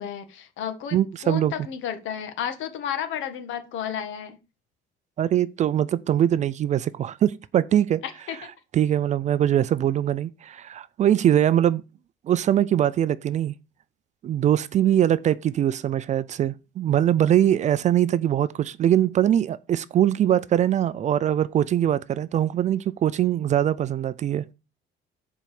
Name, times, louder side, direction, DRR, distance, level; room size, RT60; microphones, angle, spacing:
voice 1, 0.0-4.4 8.0-8.4, left 9 dB, 70° left, 1.6 m, -32 dB
voice 2, 0.9-1.5 5.2-8.0 8.7-11.8 12.3-13.6 14.2-24.4, right 11 dB, 35° right, 0.4 m, -22 dB
7.4 x 4.6 x 7.0 m
cardioid pair, 175°, 21 cm